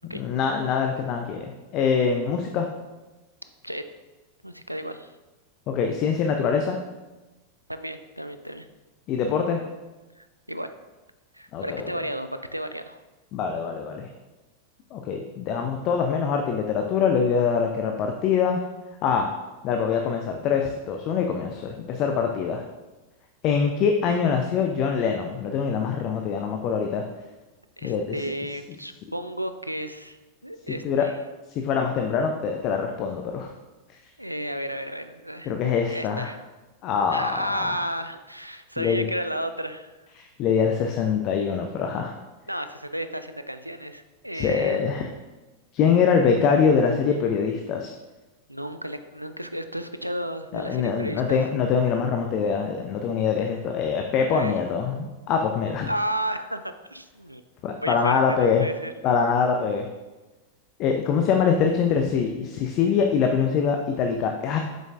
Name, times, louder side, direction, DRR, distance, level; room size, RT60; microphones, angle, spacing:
voice 1, 0.1-2.7 5.7-6.8 9.1-9.6 11.5-11.9 13.3-14.1 14.9-18.6 19.0-19.3 19.6-22.6 23.4-27.0 27.8-28.2 30.8-31.1 31.5-33.5 35.5-36.3 36.8-37.9 38.8-39.1 40.2-42.1 44.3-45.1 45.7-47.9 50.5-55.9 57.6-58.7 59.0-59.9 60.8-64.6, left 6 dB, 40° left, 3 dB, 0.5 m, -24 dB
voice 2, 4.4-5.1 7.7-8.7 10.2-10.7 11.3-13.0 27.8-30.2 30.4-31.1 34.2-35.5 35.9-36.4 37.1-39.9 42.5-44.8 48.5-51.4 54.3-54.6 55.9-57.4 57.8-58.9, right 1 dB, 90° right, 10 dB, 0.4 m, -32 dB
7.5 x 5.2 x 2.5 m, 1.1 s
figure-of-eight pair, 90°, 0 cm